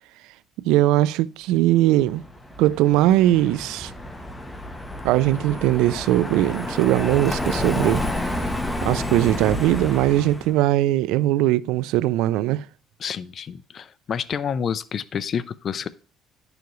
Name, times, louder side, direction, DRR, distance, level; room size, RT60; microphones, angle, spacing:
voice 1, 0.6-2.2 2.6-3.9 5.0-8.0 8.8-12.6, right 14 dB, 90° right, 0.3 m, -20 dB
Car passing by, 2.0-10.5, left 1 dB, 10° left, 1.0 m, -30 dB
voice 2, 13.0-15.9, left 7 dB, 40° left, 0.4 m, -29 dB
10.5 x 6.9 x 3.1 m
cardioid pair, 135°, 0 cm